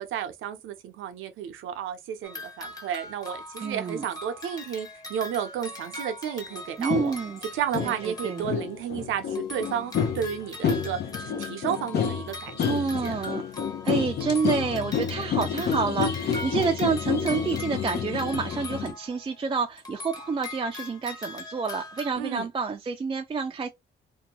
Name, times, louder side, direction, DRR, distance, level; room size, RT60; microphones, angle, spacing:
voice 1, 0.0-7.1 7.5-13.1 22.2-22.5, right 9 dB, 85° right, 0.7 m, -32 dB
sound 1, 2.2-9.0 9.3-19.5 19.8-22.1, left 2 dB, 20° left, 1.0 m, -41 dB
voice 2, 3.6-4.1 6.8-7.4 7.8-8.5 12.7-13.4 13.8-23.7, right 5 dB, 25° right, 0.4 m, -28 dB
sound 2, 6.9-7.2 7.7-8.0 8.4-18.9, left 7 dB, 55° left, 0.6 m, -29 dB
2.7 x 2.2 x 2.9 m
cardioid pair, 90°, 20 cm